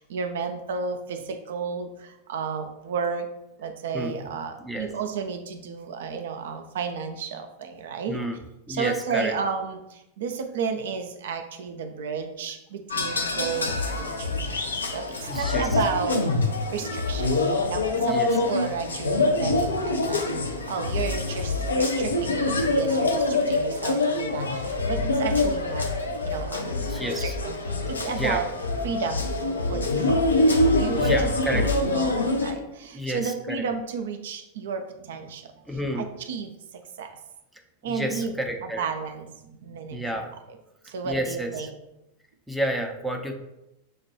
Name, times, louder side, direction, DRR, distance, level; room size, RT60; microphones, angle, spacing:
voice 1, 0.0-3.3 3.6-8.2 8.7-16.3 16.7-25.9 26.2-28.5 28.8-30.4 30.8-35.5 36.0-37.2 37.8-40.2 40.8-41.7, right 6 dB, 60° right, 6 dB, 0.4 m, -33 dB
voice 2, 3.9-4.3 4.6-4.9 8.1-8.4 8.7-9.3 13.2-13.3 15.3-15.7 18.0-18.3 22.6-22.8 26.7-27.3 28.2-28.4 30.9-31.7 32.9-33.6 35.7-36.1 37.8-38.8 39.9-40.3 41.0-41.7 42.5-43.3, equal, ahead, 2 dB, 0.5 m, -30 dB
sound 1, 12.9-32.5, left 2 dB, 75° left, 0.5 m, -25 dB
6.2 x 2.2 x 2.9 m, 0.90 s
figure-of-eight pair, 90°, 0 cm